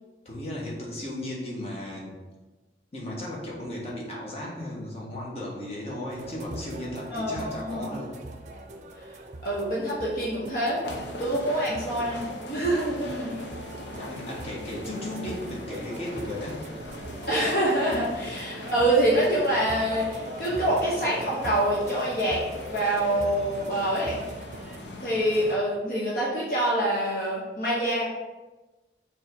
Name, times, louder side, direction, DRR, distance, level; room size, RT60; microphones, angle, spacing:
voice 1, 0.2-2.1 2.9-8.1 13.9-16.9, left 1 dB, 35° left, -4 dB, 1.5 m, -35 dB
sound 1, 6.1-24.8, right 1 dB, 40° right, 0.6 m, -41 dB
voice 2, 7.1-8.0 9.4-10.8 11.2-13.3 17.3-22.4 22.7-24.2 25.0-28.0, right 1 dB, 55° left, -6 dB, 1.2 m, -26 dB
sound 2, 10.8-25.6, left 1 dB, 90° left, 0.8 m, -41 dB
5.6 x 3.6 x 5.2 m, 1.2 s
head